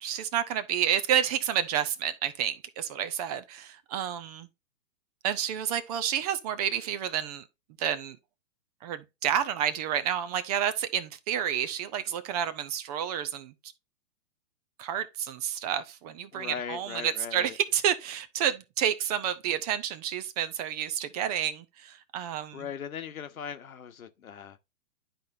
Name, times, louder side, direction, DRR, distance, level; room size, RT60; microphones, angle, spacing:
voice 1, 0.0-4.5 5.2-7.4 7.8-8.2 8.8-13.5 14.8-22.6, right 9 dB, 30° right, 0.6 m, -30 dB
voice 2, 16.3-17.6 22.2-24.6, left 7 dB, 80° left, 1.1 m, -39 dB
11.5 x 4.3 x 2.5 m
hypercardioid pair, 130°, 42 cm